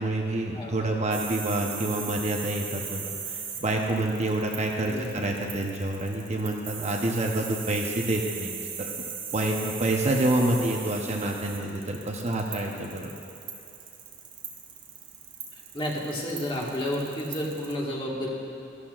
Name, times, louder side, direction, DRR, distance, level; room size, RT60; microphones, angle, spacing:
voice 1, 0.0-8.9 9.3-13.1, right 1 dB, 35° right, 0 dB, 0.9 m, -28 dB
sound 1, 1.1-17.7, right 7 dB, 65° right, 1.7 m, -38 dB
voice 2, 4.8-5.2 10.4-10.5 15.7-18.3, left 1 dB, 25° left, -3 dB, 1.7 m, -31 dB
14.0 x 13.0 x 2.5 m, 2.9 s
head